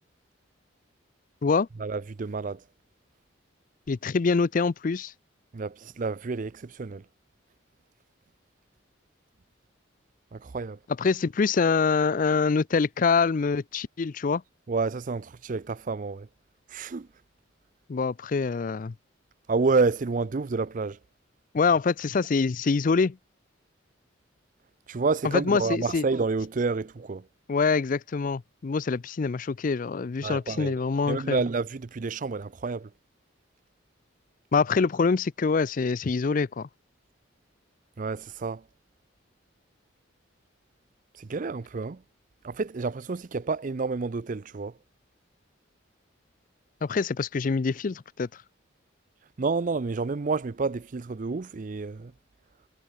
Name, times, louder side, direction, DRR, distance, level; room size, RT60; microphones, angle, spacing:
voice 1, 1.8-2.6 5.5-7.0 10.3-10.8 14.7-16.3 16.7-17.1 19.5-21.0 24.9-27.3 30.2-32.9 38.0-38.6 41.1-42.0 42.4-44.7 49.4-52.1, right 4 dB, 40° right, 0.5 m, -29 dB
voice 2, 3.9-5.1 11.0-14.4 17.9-18.9 21.5-23.2 25.2-26.0 27.5-31.4 34.5-36.7 46.8-48.3, left 4 dB, 40° left, 0.4 m, -25 dB
head